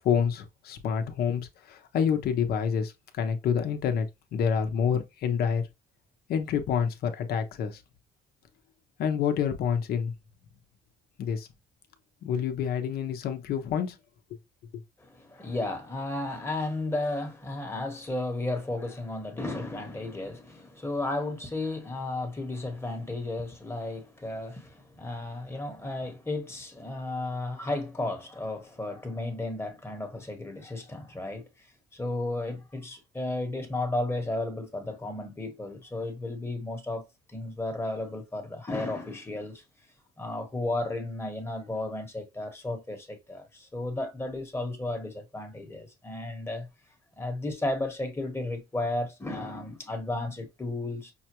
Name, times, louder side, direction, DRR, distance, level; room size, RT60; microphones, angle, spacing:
voice 1, 0.0-4.1 4.3-5.6 6.3-7.8 9.0-10.1 11.2-11.5 12.2-14.0 14.3-14.4, left 7 dB, 65° left, 0.9 m, -28 dB
voice 2, 15.0-31.5 31.9-37.0 37.3-39.6 40.2-46.7 47.2-51.1, left 2 dB, 15° left, 1.1 m, -33 dB
5.7 x 2.2 x 2.9 m
cardioid pair, 110°, 17 cm